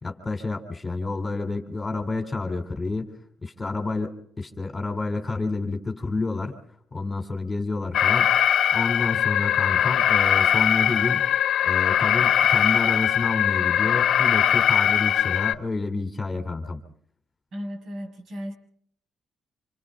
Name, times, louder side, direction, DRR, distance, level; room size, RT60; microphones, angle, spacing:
voice 1, 0.0-3.1 3.4-6.6 6.9-8.3 8.7-11.3 11.7-16.8, left 3 dB, 20° left, 6 dB, 3.7 m, -29 dB
Alarm, 7.9-15.5, left 10 dB, 65° left, 0.9 m, -21 dB
voice 2, 17.5-18.5, equal, 60° right, 5 dB, 6.6 m, -35 dB
27.0 x 25.0 x 4.1 m, 0.63 s
cardioid pair, 90°, 0 cm